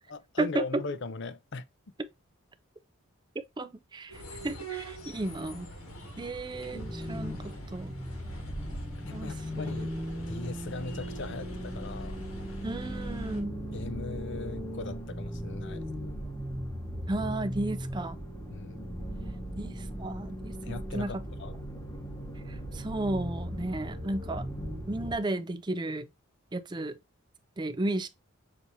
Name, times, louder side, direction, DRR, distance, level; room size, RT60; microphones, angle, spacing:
voice 1, 0.1-1.6 9.1-9.9 10.2-12.2 13.7-15.9 18.5-18.8 20.6-21.6, left 3 dB, 55° left, 0.6 m, -39 dB
voice 2, 3.6-5.7 6.2-8.0 9.1-9.3 12.6-13.6 17.1-18.2 19.6-21.1 22.5-24.4 24.9-26.1 26.5-27.0 27.6-28.1, right 2 dB, 20° right, 0.5 m, -34 dB
sound 1, 4.1-13.4, right 1 dB, 80° left, 1.8 m, -45 dB
sound 2, 6.7-25.2, equal, 15° left, 1.0 m, -38 dB
6.3 x 2.9 x 2.6 m
head